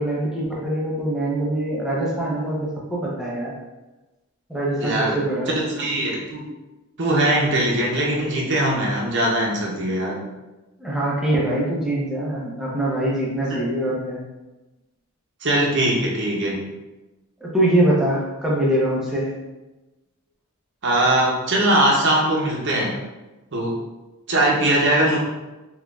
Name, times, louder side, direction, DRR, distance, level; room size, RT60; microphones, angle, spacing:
voice 1, 0.0-3.5 4.5-5.6 10.8-14.2 17.4-19.3, right 1 dB, ahead, -6 dB, 0.7 m, -23 dB
voice 2, 4.8-5.2 5.5-6.4 7.0-10.2 13.5-13.6 15.4-16.6 20.8-22.9 23.5-23.7 24.3-25.2, right 1 dB, 55° right, -2 dB, 0.7 m, -21 dB
3.8 x 3.0 x 2.3 m, 1.1 s
head